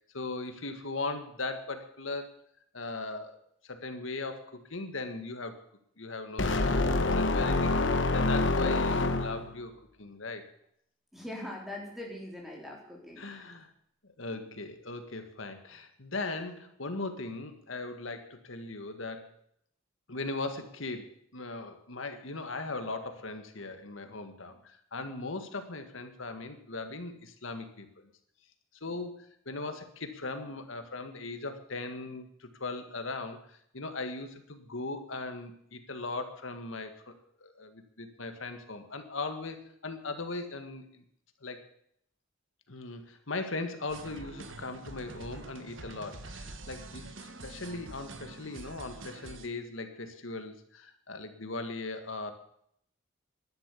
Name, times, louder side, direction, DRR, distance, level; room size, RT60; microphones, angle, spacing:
voice 1, 0.1-2.4 2.7-5.6 6.0-10.5 13.2-13.7 14.0-19.3 20.1-28.1 28.8-37.1 37.4-41.0 41.4-41.7 42.7-52.3, left 3 dB, 80° left, 8 dB, 1.8 m, -39 dB
sound 1, 6.4-9.6, left 2 dB, 65° left, 1.1 m, -26 dB
voice 2, 11.1-13.5 14.4-14.5, left 1 dB, ahead, -2 dB, 3.9 m, -42 dB
sound 2, 43.9-49.5, right 3 dB, 75° right, 1.4 m, -46 dB
11.5 x 11.0 x 8.4 m, 0.70 s
head